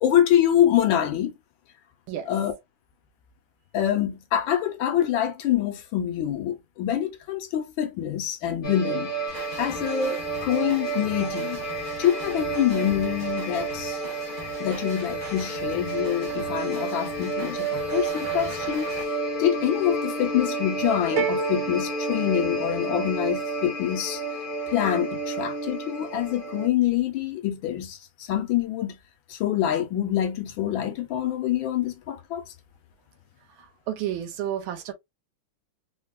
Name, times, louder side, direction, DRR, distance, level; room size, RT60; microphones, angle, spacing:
voice 1, 0.0-1.4 2.3-2.5 3.7-9.1 9.6-11.6 12.0-14.0 14.6-24.2 24.7-29.0 29.3-32.4, left 11 dB, 75° left, 1.3 m, -25 dB
sound 1, 8.6-26.7, right 2 dB, 50° left, 0.6 m, -31 dB
sound 2, 9.3-19.0, right 3 dB, 45° right, 0.5 m, -41 dB
sound 3, 21.2-23.2, right 4 dB, 60° right, 0.9 m, -31 dB
voice 2, 33.6-34.9, right 11 dB, 75° right, 1.4 m, -31 dB
4.1 x 2.2 x 2.2 m
omnidirectional pair, 2.3 m